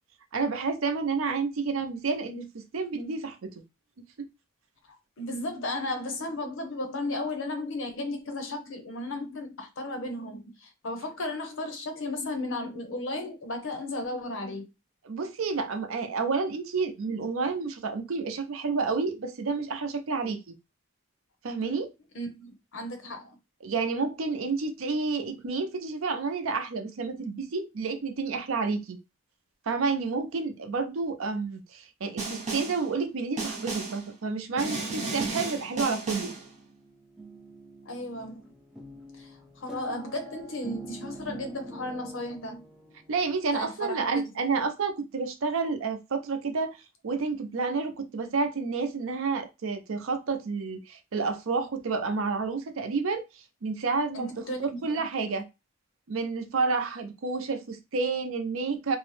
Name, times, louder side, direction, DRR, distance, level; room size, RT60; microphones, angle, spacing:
voice 1, 0.3-3.5 4.2-4.3 15.1-20.4 21.4-21.9 23.6-29.0 29.7-36.3 43.1-55.5 56.1-59.0, right 4 dB, 70° right, 0.5 m, -30 dB
voice 2, 5.2-14.6 22.1-23.4 37.8-38.5 39.2-42.6 43.5-44.1 54.1-55.1, left 2 dB, 65° left, 0.7 m, -34 dB
Snare drum, 32.2-32.9 33.4-34.1 34.6-36.5, right 3 dB, 35° right, 0.7 m, -33 dB
sound 1, 36.2-43.4, right 2 dB, 5° right, 0.4 m, -46 dB
2.6 x 2.0 x 3.1 m
head